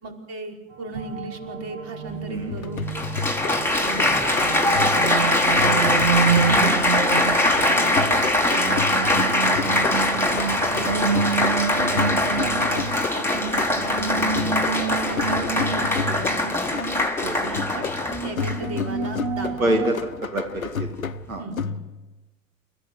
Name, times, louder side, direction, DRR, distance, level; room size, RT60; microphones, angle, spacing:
voice 1, 0.0-2.9 3.4-5.8 6.9-7.3 7.7-10.1 10.7-11.4 12.4-14.6 15.1-16.7 17.4-17.9 18.2-19.9 21.4-21.8, right 3 dB, 35° right, 2 dB, 5.2 m, -36 dB
sound 1, 0.7-19.9, right 6 dB, 65° right, 2.9 m, -29 dB
Applause, 2.1-2.2 2.9-18.8 19.5-19.9, left 1 dB, 5° left, 4.6 m, -22 dB
sound 2, 2.5-22.2, left 5 dB, 90° left, 0.9 m, -32 dB
voice 2, 6.4-6.8 10.9-11.0 12.1-12.4 17.2-17.4 19.6-19.9 20.3-20.9 21.3-21.4, right 1 dB, 85° right, 3 dB, 2.4 m, -26 dB
29.5 x 15.0 x 8.2 m, 1.1 s
figure-of-eight pair, 75°, 40 cm